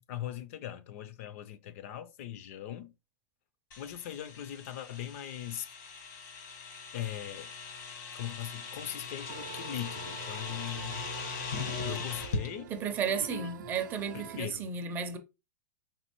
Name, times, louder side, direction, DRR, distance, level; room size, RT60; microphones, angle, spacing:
voice 1, 0.0-2.9 3.8-5.7 6.9-7.5 8.1-11.1 11.8-12.7 13.2-13.5 14.1-14.7, left 11 dB, 50° left, 0.4 m, -40 dB
sound 1, 3.7-12.5, left 5 dB, 70° left, 1.1 m, -40 dB
sound 2, 9.3-14.5, right 8 dB, 85° right, 0.6 m, -46 dB
voice 2, 12.7-15.2, right 6 dB, 20° right, 0.4 m, -33 dB
4.2 x 2.8 x 3.0 m
supercardioid pair, 160°, 10 cm